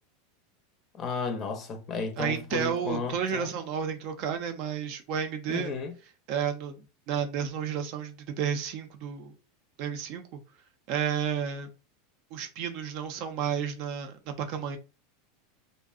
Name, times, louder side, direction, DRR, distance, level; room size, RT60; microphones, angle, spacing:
voice 1, 1.0-3.5 5.5-5.9, left 4 dB, 35° left, 0.5 m, -33 dB
voice 2, 2.2-5.8 6.3-6.8 7.1-9.3 9.8-10.4 10.9-11.7 12.3-14.8, right 8 dB, 55° right, 0.5 m, -31 dB
2.6 x 2.0 x 2.4 m
supercardioid pair, 115°, 0 cm